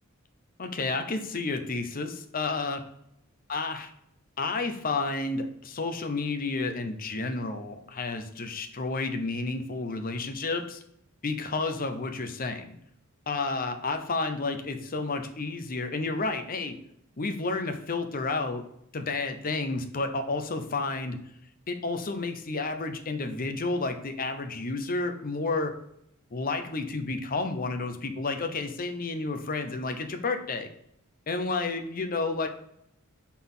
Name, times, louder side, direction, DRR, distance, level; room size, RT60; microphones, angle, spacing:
voice 1, 0.6-2.8 3.5-3.9 4.4-10.8 11.2-12.8 13.3-16.8 17.2-18.6 18.9-21.2 21.7-25.8 26.3-30.7 31.3-32.5, left 3 dB, 40° left, 7 dB, 0.8 m, -31 dB
5.8 x 4.2 x 5.5 m, 0.75 s
head